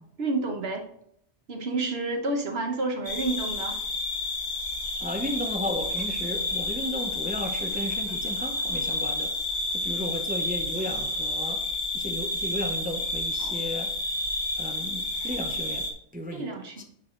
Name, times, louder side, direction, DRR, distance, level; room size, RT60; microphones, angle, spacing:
voice 1, 0.2-0.9 1.5-3.8 13.4-13.7 16.3-16.8, right 3 dB, 60° right, 1.3 m, -30 dB
sound 1, 3.1-15.9, left 2 dB, 70° left, 1.6 m, -30 dB
voice 2, 5.0-9.3 9.7-11.7 11.9-13.9 14.6-16.5 16.8-16.9, left 1 dB, 10° right, 0.6 m, -34 dB
9.3 x 4.7 x 3.8 m
omnidirectional pair, 1.2 m